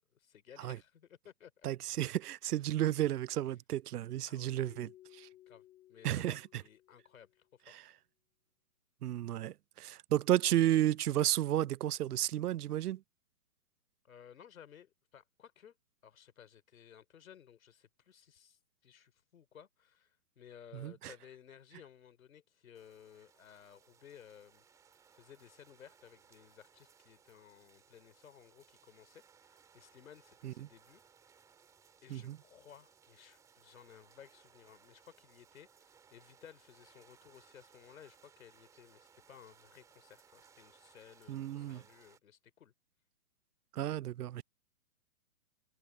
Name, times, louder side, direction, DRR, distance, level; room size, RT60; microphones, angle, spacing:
voice 1, 0.1-1.7 4.3-4.6 5.5-5.6 5.9-7.7 14.0-15.8 16.0-24.6 25.1-31.0 32.0-42.7, left 9 dB, 65° left, 3.3 m, -57 dB
voice 2, 1.6-5.3 6.0-6.4 7.7-7.8 9.0-13.0 20.7-21.1 30.4-30.5 32.1-32.4 41.3-41.8 43.7-44.4, right 13 dB, 85° right, 0.6 m, -32 dB
Keyboard (musical), 4.6-7.4, left 14 dB, 15° left, 2.5 m, -59 dB
sound 1, 22.7-42.2, right 7 dB, 5° right, 2.6 m, -65 dB
hypercardioid pair, 170°, 44 cm